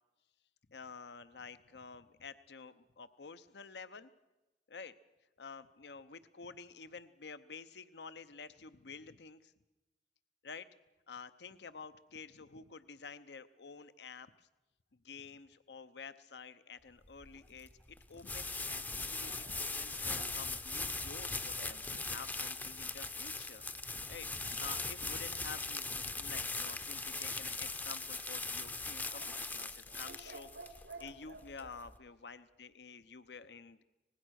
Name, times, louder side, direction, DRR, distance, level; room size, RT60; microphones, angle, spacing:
voice 1, 0.7-4.1 4.7-4.9 5.4-9.5 10.4-10.7 11.1-14.5 15.0-23.6 24.1-33.8, left 5 dB, 75° left, 12 dB, 0.8 m, -50 dB
sound 1, 17.1-32.0, left 3 dB, 10° left, 0.7 m, -40 dB
sound 2, 19.2-21.8 27.2-28.1 29.1-31.8, right 2 dB, 85° right, 2.5 m, -54 dB
25.0 x 20.0 x 6.4 m, 1.1 s
head